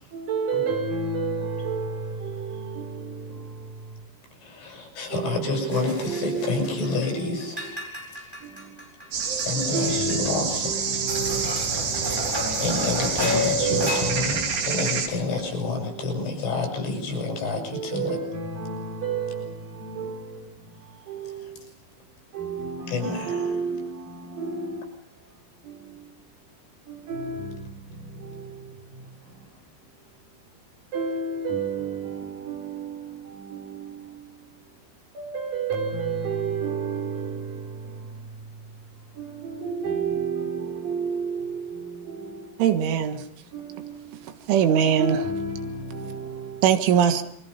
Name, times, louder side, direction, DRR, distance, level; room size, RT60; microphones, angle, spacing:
voice 1, 0.1-3.4 5.1-6.9 7.1-7.4 8.4-8.6 9.5-12.3 13.4-14.9 15.9-16.1 17.6-20.4 21.1-21.5 22.3-24.8 25.7-25.9 26.9-27.6 28.2-28.5 30.9-34.2 35.1-37.7 39.2-42.3 43.5-43.9 44.8-46.6, right 5 dB, 50° right, 4.9 m, -31 dB
voice 2, 4.4-7.8 8.1-8.3 9.4-10.8 12.0-18.2 21.2-21.6 22.9-23.6, left 3 dB, 80° left, 10.0 m, -29 dB
sound 1, 5.7-7.1 7.4-9.7 10.1-10.2 10.5-10.6 11.1-14.6, left 2 dB, 5° right, 7.1 m, -31 dB
sound 2, 9.1-15.1, right 6 dB, 65° right, 5.0 m, -28 dB
Computer keyboard, 9.4-15.5, right 1 dB, 30° right, 8.1 m, -41 dB
voice 3, 42.6-43.2 44.5-45.2 46.6-47.2, right 8 dB, 85° right, 3.9 m, -20 dB
28.0 x 24.0 x 5.7 m
omnidirectional pair, 5.4 m